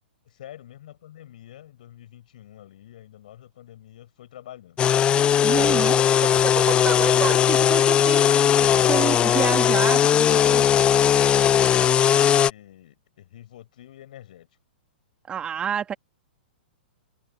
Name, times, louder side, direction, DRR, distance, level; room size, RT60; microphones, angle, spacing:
voice 1, 0.2-4.9 9.6-10.8 11.4-14.5, left 12 dB, 55° left, 6.8 m, -45 dB
sound 1, 4.8-12.5, left 9 dB, 20° left, 0.5 m, -19 dB
voice 2, 5.4-8.5 8.8-10.6 15.3-15.9, right 8 dB, 20° right, 2.2 m, -29 dB
figure-of-eight pair, 110°, 5 cm